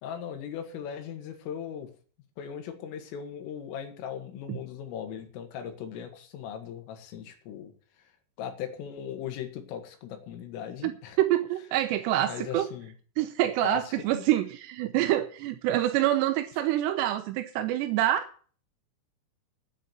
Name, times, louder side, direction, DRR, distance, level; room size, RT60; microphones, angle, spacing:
voice 1, 0.0-1.9 2.4-7.7 8.0-8.1 8.4-11.2 12.3-12.9 13.6-14.2, left 8 dB, 80° left, 4.5 m, -38 dB
voice 2, 11.2-12.7 13.2-18.3, right 13 dB, 75° right, 2.6 m, -26 dB
9.8 x 8.2 x 9.2 m
omnidirectional pair, 5.7 m